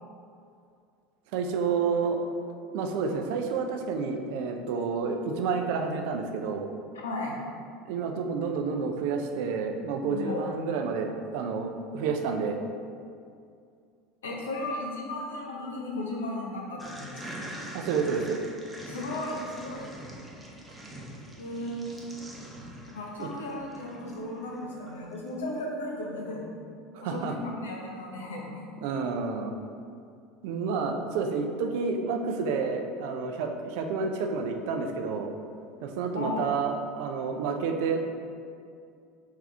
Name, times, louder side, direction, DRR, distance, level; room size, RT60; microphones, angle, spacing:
voice 1, 1.3-2.2 2.7-6.7 7.9-12.6 17.7-18.4 23.2-23.3 26.9-27.3 28.8-29.5 30.4-35.3 35.8-38.0, right 5 dB, 70° right, 4 dB, 0.4 m, -29 dB
voice 2, 7.0-7.4 10.1-10.6 14.2-17.2 18.8-19.9 21.4-22.1 22.9-26.5 27.0-28.7 36.1-36.5, left 1 dB, 85° left, -2 dB, 0.8 m, -35 dB
sound 1, 16.8-25.4, right 1 dB, 10° right, 0.7 m, -44 dB
3.7 x 3.5 x 3.3 m, 2.3 s
hypercardioid pair, 80°, 0 cm